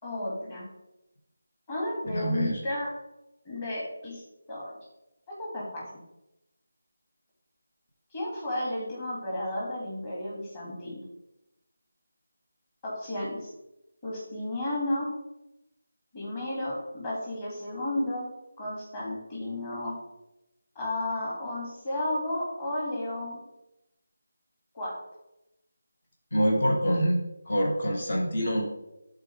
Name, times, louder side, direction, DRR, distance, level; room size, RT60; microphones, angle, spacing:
voice 1, 0.0-0.7 1.7-2.9 3.4-4.2 4.5-4.7 5.3-5.8 8.1-11.0 12.8-13.5 14.0-15.1 16.1-18.3 18.6-20.0 20.7-23.4 24.7-25.0, left 1 dB, 25° left, -5 dB, 2.4 m, -33 dB
voice 2, 2.1-2.6 26.3-28.6, equal, 45° left, 0 dB, 1.6 m, -26 dB
11.0 x 4.0 x 3.5 m, 0.90 s
figure-of-eight pair, 160°, 0 cm